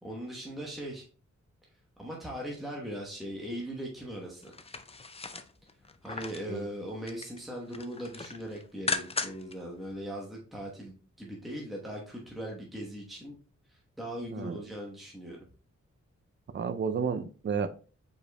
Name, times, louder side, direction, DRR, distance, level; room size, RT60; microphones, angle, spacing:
voice 1, 0.0-1.0 2.0-4.5 6.0-13.4 13.7-15.4, equal, ahead, 1.0 m, -39 dB
sound 1, 4.4-6.5 6.9-7.4 7.7-9.5 9.9-10.0, left 4 dB, 20° left, 0.4 m, -37 dB
voice 2, 16.5-17.7, right 6 dB, 40° right, 0.4 m, -31 dB
5.0 x 4.4 x 2.2 m
wide cardioid pair, 115°, 29 cm